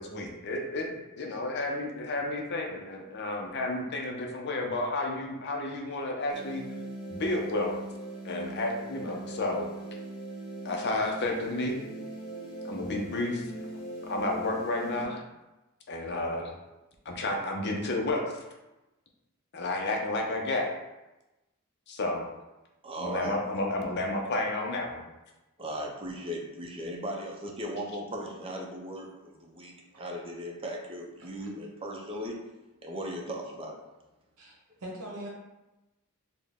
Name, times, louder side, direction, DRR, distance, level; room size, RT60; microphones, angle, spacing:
voice 1, 0.0-6.6 7.1-7.7 8.2-9.7 10.6-11.8 12.6-13.4 14.0-15.2 15.9-16.5 17.1-18.2 19.5-20.7 21.9-22.3 23.0-25.1, left 2 dB, 50° left, 0 dB, 0.6 m, -31 dB
sound 1, 6.3-15.0, right 1 dB, 25° left, 1.0 m, -40 dB
voice 2, 22.8-23.4 25.6-32.4 32.8-33.8, equal, 25° right, 0 dB, 0.5 m, -37 dB
voice 3, 34.4-35.3, right 1 dB, 75° right, -2 dB, 0.9 m, -42 dB
4.0 x 2.1 x 3.5 m, 1.0 s
head